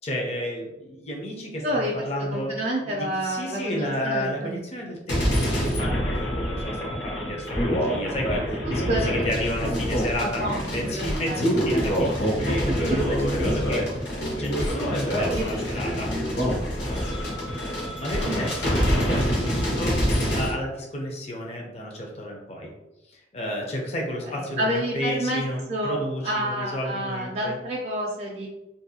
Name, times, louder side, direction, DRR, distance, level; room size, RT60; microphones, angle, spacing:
voice 1, 0.0-2.5 2.8-10.4 10.7-13.8 14.4-16.1 16.8-17.0 17.9-22.7 23.1-27.6, equal, 35° left, 0 dB, 0.5 m, -31 dB
voice 2, 1.6-1.9 2.3-4.6 8.6-9.2 10.2-10.9 11.3-11.5 12.5-13.0 15.3-15.4 18.3-18.4 24.3-25.4 25.7-26.0 26.2-28.5, right 1 dB, 40° right, -3 dB, 0.4 m, -29 dB
sound 1, 5.1-20.5, equal, 75° left, 0.9 m, -26 dB
2.5 x 2.3 x 2.6 m, 0.95 s
head